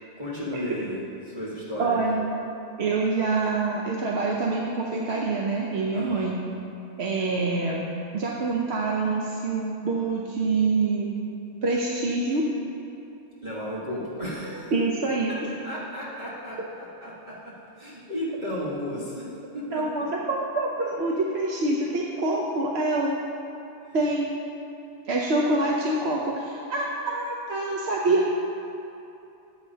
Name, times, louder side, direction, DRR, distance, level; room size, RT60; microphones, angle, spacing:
voice 1, 0.2-2.0 5.9-6.3 13.4-14.7 15.2-15.3 15.6-20.0, equal, 40° right, -9 dB, 1.7 m, -34 dB
voice 2, 1.8-2.3 2.8-6.4 7.0-7.9 8.1-11.1 11.6-12.5 14.7-15.3 19.7-23.1 23.9-24.3 25.1-28.3, right 3 dB, 65° right, -2 dB, 1.0 m, -26 dB
13.5 x 9.1 x 2.8 m, 2.8 s
omnidirectional pair, 1.2 m